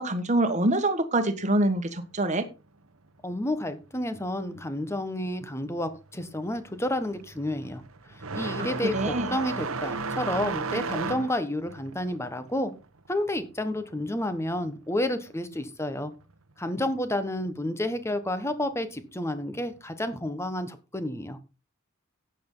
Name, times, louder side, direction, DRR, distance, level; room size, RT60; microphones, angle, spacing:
voice 1, 0.0-2.5 8.9-9.3, right 1 dB, 35° right, 1.5 m, -25 dB
voice 2, 3.2-7.8 8.3-12.7 13.1-16.1 16.6-21.4, left 1 dB, 15° left, 1.3 m, -30 dB
sound 1, 5.6-5.9 6.3-14.6 14.9-15.9 16.9-17.0 17.8-17.9 19.6-19.8, right 4 dB, 85° right, 1.1 m, -34 dB
12.0 x 9.1 x 3.9 m
head